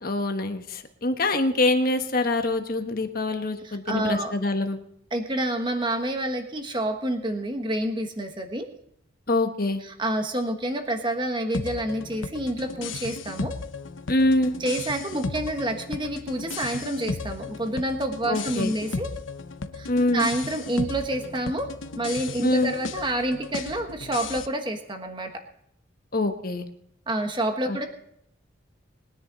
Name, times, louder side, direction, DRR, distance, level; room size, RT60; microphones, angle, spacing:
voice 1, 0.0-4.8 9.3-9.8 14.1-14.5 18.3-18.7 19.9-20.3 22.4-22.7 26.1-26.7 27.7-27.8, left 2 dB, 45° left, 6 dB, 1.3 m, -24 dB
voice 2, 3.6-4.3 5.1-8.7 9.8-13.5 14.6-19.1 19.7-21.7 22.0-25.4 27.1-27.9, right 1 dB, 25° right, 5 dB, 1.3 m, -28 dB
sound 1, 11.5-24.5, left 4 dB, 75° left, 0.7 m, -35 dB
21.0 x 10.0 x 4.0 m, 0.71 s
head